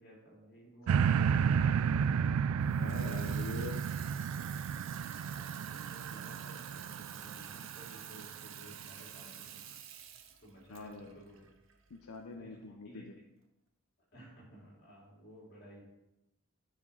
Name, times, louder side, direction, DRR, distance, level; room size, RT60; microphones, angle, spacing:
voice 1, 0.0-2.1 5.2-9.5 10.4-11.4 12.4-13.0 14.1-15.8, right 1 dB, 45° left, -4 dB, 3.7 m, -55 dB
sound 1, 0.9-8.2 8.8-8.9, right 7 dB, 85° right, 0.3 m, -32 dB
Water tap faucet / Sink (filling or washing), 2.6-12.2, right 9 dB, 65° right, 0.9 m, -50 dB
voice 2, 2.8-3.8 10.7-11.2 11.9-13.2, left 4 dB, 85° left, 4 dB, 0.7 m, -44 dB
9.5 x 5.0 x 5.6 m, 0.92 s
head